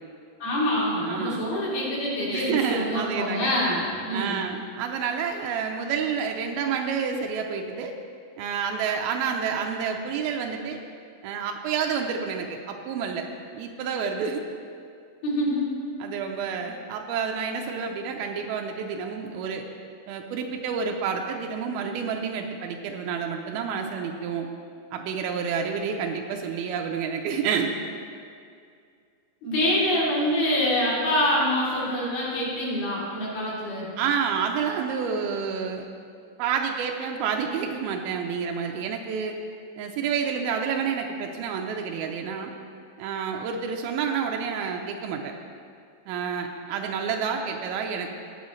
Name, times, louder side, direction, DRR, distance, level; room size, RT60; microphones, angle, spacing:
voice 1, 0.4-4.4 15.2-15.7 29.4-33.9, left 1 dB, 75° left, -8 dB, 4.8 m, -25 dB
voice 2, 1.1-1.4 2.3-3.6 4.1-7.9 8.4-10.8 11.2-14.4 16.0-19.7 20.1-24.5 24.9-27.7 34.0-35.9 36.4-39.4 39.8-42.5 43.0-45.3 46.1-48.1, right 6 dB, 90° right, 2 dB, 2.6 m, -29 dB
18.5 x 7.2 x 3.2 m, 2.3 s
omnidirectional pair, 4.3 m